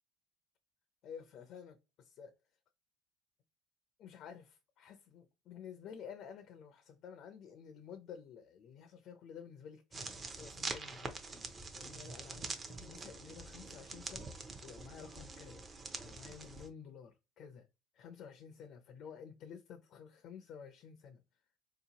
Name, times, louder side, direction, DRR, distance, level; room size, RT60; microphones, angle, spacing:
voice 1, 1.0-2.3 4.0-14.3 14.6-15.7 16.0-17.7 17.9-21.2, left 7 dB, 50° left, 0.5 m, -52 dB
sound 1, 9.9-16.7, right 3 dB, 20° right, 0.5 m, -45 dB
4.2 x 2.8 x 2.8 m
cardioid pair, 150°, 0 cm